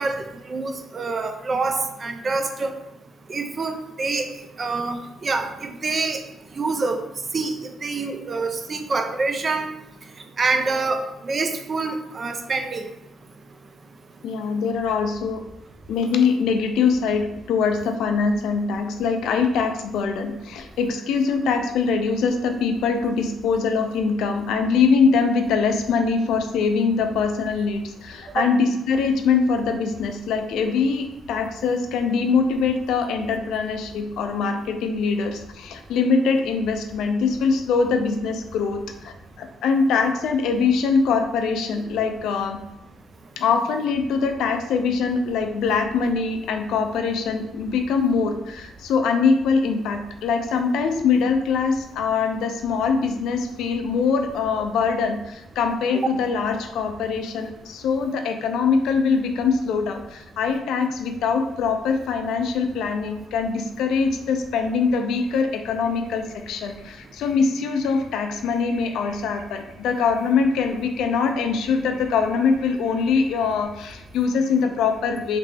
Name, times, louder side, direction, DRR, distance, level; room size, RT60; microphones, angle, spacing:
voice 1, 0.0-2.7 3.3-4.3 4.6-6.2 6.6-7.0 7.3-7.6 7.8-9.7 10.4-12.9 28.4-28.5, right 3 dB, 40° right, 6 dB, 0.4 m, -26 dB
voice 2, 14.2-15.4 15.9-42.6 43.4-75.4, left 5 dB, 80° left, 6 dB, 0.4 m, -23 dB
3.3 x 2.8 x 3.3 m, 0.89 s
cardioid pair, 90°, 0 cm